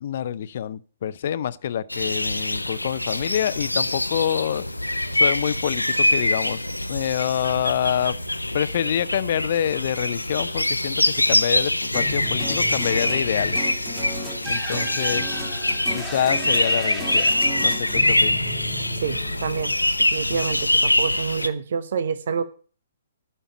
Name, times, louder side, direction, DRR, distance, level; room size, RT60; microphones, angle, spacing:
voice 1, 0.0-4.6 5.1-6.6 6.9-8.2 8.5-13.7 14.5-15.4 15.9-18.4 20.3-20.5, left 9 dB, 50° left, 0.6 m, -26 dB
sound 1, 1.9-21.5, left 1 dB, 90° left, 0.8 m, -24 dB
sound 2, 11.9-20.2, equal, 10° right, 2.6 m, -34 dB
voice 2, 19.0-19.7 20.1-22.4, right 6 dB, 55° right, 0.8 m, -27 dB
12.0 x 5.6 x 8.6 m
figure-of-eight pair, 125°, 0 cm